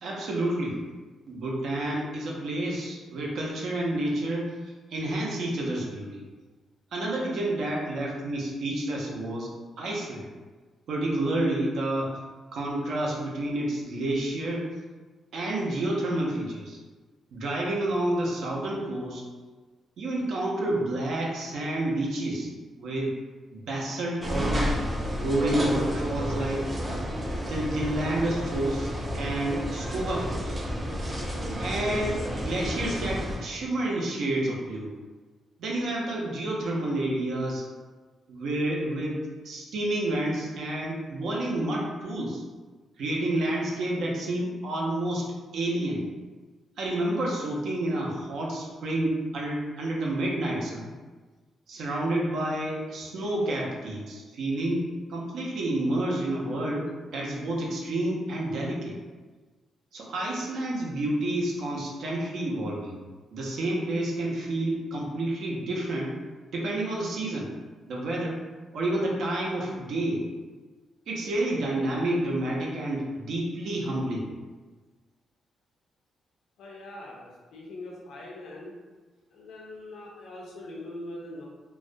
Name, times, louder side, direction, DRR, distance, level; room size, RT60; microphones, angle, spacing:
voice 1, 0.0-0.8 1.3-4.5 4.9-6.2 6.9-10.3 10.9-12.1 12.5-14.6 15.3-16.8 17.3-19.2 20.0-22.5 22.8-23.1 23.5-24.8 25.1-26.7 27.5-28.9 29.1-30.6 31.6-34.9 35.6-37.7 38.3-39.2 39.4-42.4 43.0-45.3 45.5-46.0 46.8-50.9 51.7-54.8 55.1-58.9 59.9-63.0 63.3-66.1 66.5-67.5 67.9-68.4 68.7-70.2 71.1-74.3, right 1 dB, 70° right, -2 dB, 0.5 m, -29 dB
sound 1, 24.2-33.4, equal, 20° right, 0.3 m, -31 dB
voice 2, 76.6-78.7 79.3-81.5, left 1 dB, 75° left, -3 dB, 0.5 m, -42 dB
2.3 x 2.1 x 2.6 m, 1.3 s
cardioid pair, 145°, 0 cm